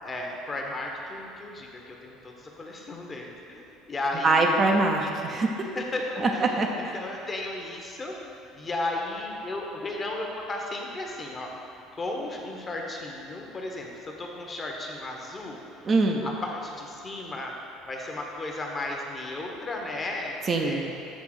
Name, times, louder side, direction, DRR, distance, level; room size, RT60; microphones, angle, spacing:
voice 1, 0.0-4.7 5.7-8.1 8.5-15.9 16.2-17.5 17.8-20.9, left 2 dB, 30° left, 0 dB, 1.0 m, -34 dB
voice 2, 4.2-5.7 6.2-7.0 15.8-16.2 20.5-20.9, right 3 dB, 35° right, 1 dB, 0.6 m, -24 dB
7.4 x 3.4 x 4.9 m, 2.7 s
figure-of-eight pair, 60°, 0 cm